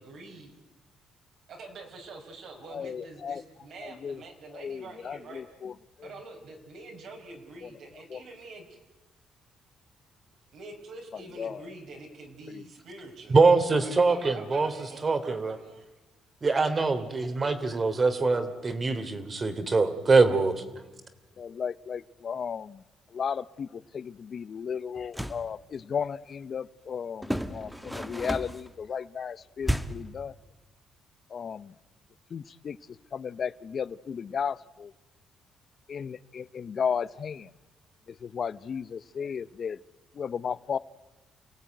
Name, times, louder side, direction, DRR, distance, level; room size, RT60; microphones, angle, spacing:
voice 1, 0.0-0.5 1.5-5.4 6.0-8.8 10.5-13.4 13.8-15.8, right 3 dB, 70° right, 1 dB, 4.7 m, -45 dB
voice 2, 2.7-3.4 3.8-4.2 4.5-5.7 6.0-6.1 7.6-7.7 8.1-8.2 11.1-11.7 12.5-12.6 21.4-22.8 23.1-30.3 31.3-31.7 32.3-34.9 35.9-37.5 38.1-39.8 40.1-40.8, left 7 dB, 50° left, 17 dB, 0.7 m, -35 dB
voice 3, 13.3-14.7 15.0-15.6 16.4-20.5, right 3 dB, 35° right, 10 dB, 3.1 m, -23 dB
sound 1, 25.0-25.5 27.2-28.7 29.6-30.1, equal, 5° right, 1.4 m, -32 dB
29.5 x 17.0 x 9.3 m, 1.1 s
cardioid pair, 90°, 0 cm